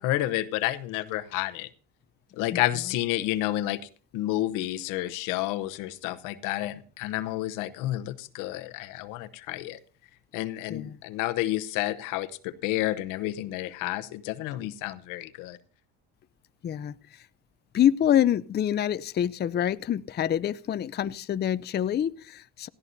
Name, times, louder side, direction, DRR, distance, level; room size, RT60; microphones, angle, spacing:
voice 1, 0.0-1.7 2.4-3.8 4.1-9.8 10.3-15.6, left 15 dB, 85° left, 1.0 m, -30 dB
voice 2, 16.6-17.2 17.7-22.7, left 10 dB, 35° left, 0.5 m, -26 dB
18.5 x 13.5 x 2.7 m
cardioid pair, 100°, 31 cm